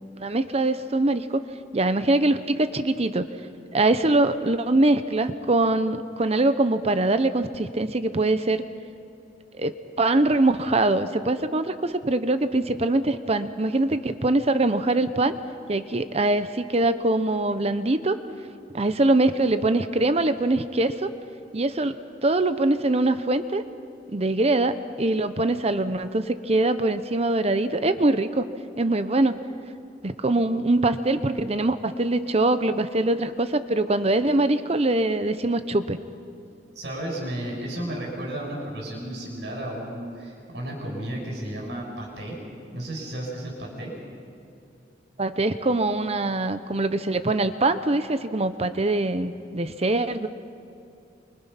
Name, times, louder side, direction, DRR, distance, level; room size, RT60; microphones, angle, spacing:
voice 1, 0.0-1.4 1.7-3.3 3.7-8.6 9.6-15.3 15.7-18.2 18.7-21.1 21.5-23.6 24.1-28.5 28.8-29.4 30.0-36.0 45.2-50.3, right 2 dB, 35° right, 11 dB, 0.8 m, -23 dB
voice 2, 36.8-42.4 42.7-44.0, right 1 dB, 70° right, -1 dB, 7.3 m, -33 dB
28.5 x 24.0 x 5.8 m, 2.6 s
head